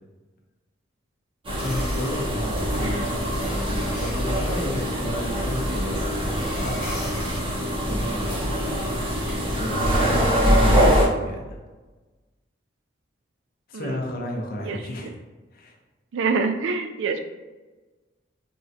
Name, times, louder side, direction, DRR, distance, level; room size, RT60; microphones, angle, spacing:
sound 1, 1.4-11.1, equal, 25° right, 0.6 m, -23 dB
voice 1, 1.6-7.1 7.8-8.8 9.4-11.6 13.7-15.1 15.5-15.8, left 1 dB, 45° left, 0 dB, 0.5 m, -33 dB
sound 2, 1.6-2.1 2.5-4.8 5.2-7.4 8.0-10.8, left 1 dB, 15° left, 1.1 m, -41 dB
voice 2, 2.7-3.2 13.7-13.9 14.7-14.8 16.1-17.2, right 4 dB, 75° right, 7 dB, 0.3 m, -26 dB
3.6 x 2.1 x 2.6 m, 1.2 s
head